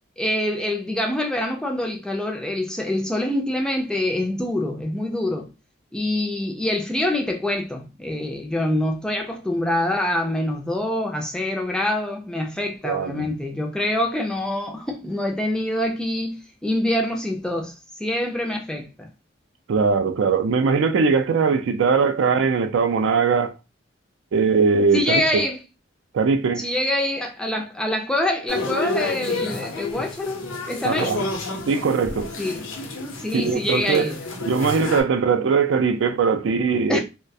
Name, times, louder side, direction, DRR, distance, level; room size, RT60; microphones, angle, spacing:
voice 1, 0.2-5.5 5.9-17.7 18.0-19.1 24.9-25.6 26.6-31.2 32.4-32.6 33.2-34.2 36.9-37.0, left 1 dB, 5° left, 0.3 m, -25 dB
voice 2, 12.8-13.3 19.7-23.5 24.3-25.4 26.1-26.6 30.8-31.2 31.7-32.3 33.3-34.1 34.5-37.0, right 5 dB, 75° right, 0.3 m, -20 dB
sound 1, 28.5-35.0, left 2 dB, 85° left, 0.6 m, -30 dB
2.3 x 2.1 x 2.6 m
head